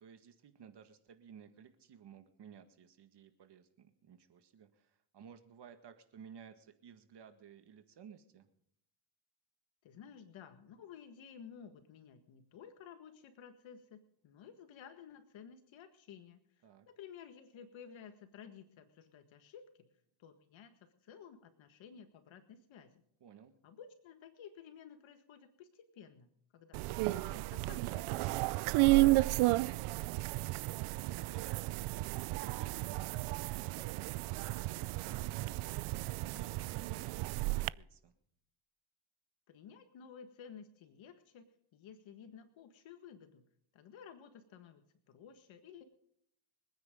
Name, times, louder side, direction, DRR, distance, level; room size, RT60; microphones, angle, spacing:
voice 1, 0.0-8.5 16.6-16.9 23.2-23.5 29.3-38.1, right 7 dB, 55° right, 8 dB, 1.8 m, -56 dB
voice 2, 9.8-19.9 20.2-23.0 23.6-28.9 39.5-43.5 43.7-45.8, left 7 dB, 65° left, 7 dB, 1.8 m, -54 dB
sound 1, 26.7-37.7, right 21 dB, 75° right, 0.6 m, -33 dB
26.0 x 9.6 x 3.8 m, 0.70 s
cardioid pair, 105°, 50 cm